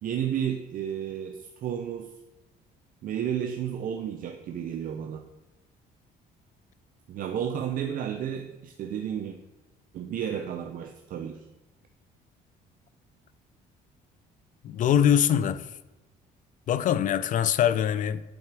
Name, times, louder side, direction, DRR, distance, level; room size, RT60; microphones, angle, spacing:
voice 1, 0.0-2.1 3.0-5.3 7.1-9.4 9.9-11.4, right 9 dB, 55° right, 0.5 m, -32 dB
voice 2, 14.6-15.7 16.7-18.2, left 9 dB, 50° left, 0.4 m, -23 dB
7.8 x 4.1 x 4.7 m
cardioid pair, 110°, 17 cm